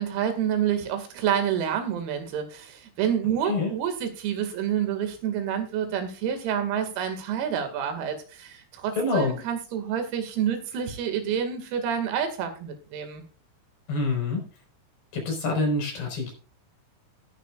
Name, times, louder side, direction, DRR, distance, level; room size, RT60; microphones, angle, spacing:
voice 1, 0.0-13.2, right 8 dB, 85° right, 7 dB, 4.9 m, -28 dB
voice 2, 9.0-9.3 13.9-14.4 15.1-16.3, left 3 dB, 50° left, 1 dB, 6.7 m, -26 dB
18.0 x 10.0 x 2.5 m, 0.36 s
omnidirectional pair, 6.0 m